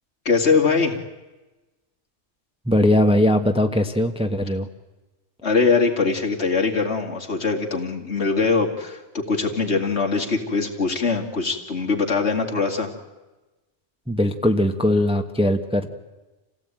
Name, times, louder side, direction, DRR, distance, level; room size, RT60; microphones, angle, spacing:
voice 1, 0.2-1.0 5.4-12.9, left 4 dB, 65° left, 1 dB, 2.7 m, -22 dB
voice 2, 2.7-4.7 14.1-15.9, left 1 dB, 5° right, 6 dB, 1.1 m, -20 dB
27.5 x 17.0 x 9.1 m, 1.1 s
omnidirectional pair, 1.3 m